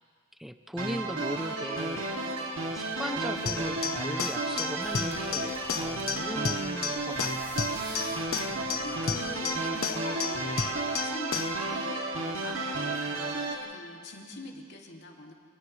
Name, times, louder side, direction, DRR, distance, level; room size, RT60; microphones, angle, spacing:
voice 1, 0.4-2.3 2.7-7.7, equal, ahead, 7 dB, 0.6 m, -38 dB
sound 1, 0.8-13.5, right 2 dB, 70° right, 2.7 m, -32 dB
sound 2, 3.5-11.7, left 6 dB, 85° left, 1.0 m, -34 dB
sound 3, 4.8-9.8, right 2 dB, 20° right, 1.9 m, -47 dB
voice 2, 8.0-15.3, left 2 dB, 55° left, 0 dB, 2.6 m, -44 dB
29.5 x 29.5 x 3.3 m, 2.1 s
head